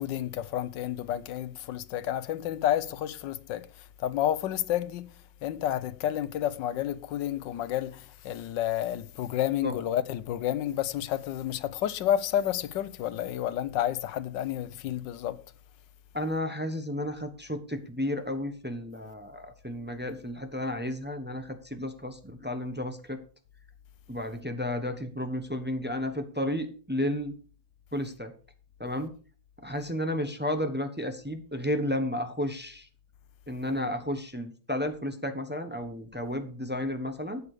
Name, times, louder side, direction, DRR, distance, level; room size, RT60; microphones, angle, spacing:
voice 1, 0.0-3.6 4.0-5.1 5.4-15.4, left 11 dB, 75° left, 1.3 m, -30 dB
voice 2, 16.1-23.2 24.1-27.3 27.9-28.3 28.8-29.1 29.6-32.9 33.5-37.4, left 1 dB, 10° right, 0.7 m, -32 dB
11.5 x 8.4 x 4.9 m
omnidirectional pair, 2.0 m